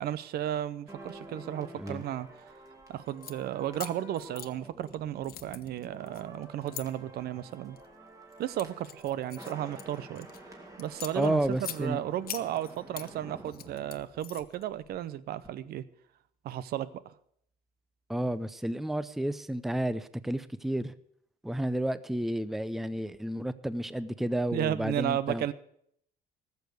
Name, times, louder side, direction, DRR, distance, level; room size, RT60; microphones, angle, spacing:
voice 1, 0.0-2.3 2.9-7.8 8.4-10.3 10.8-11.4 11.7-15.8 16.4-17.1 24.5-25.5, right 11 dB, 70° right, 17 dB, 0.7 m, -34 dB
sound 1, 0.9-15.0 15.3-15.5, right 1 dB, 20° right, 2.6 m, -50 dB
sound 2, 3.1-3.4 3.7-5.0 5.2-6.8 7.5-7.9 8.3-10.4 10.8-11.8 12.3-13.1 13.4-14.6, left 12 dB, 65° left, 0.9 m, -42 dB
voice 2, 11.2-12.0 18.1-20.9 21.4-25.5, right 1 dB, ahead, 15 dB, 0.5 m, -31 dB
14.0 x 7.0 x 8.1 m, 0.69 s
cardioid pair, 110°, 17 cm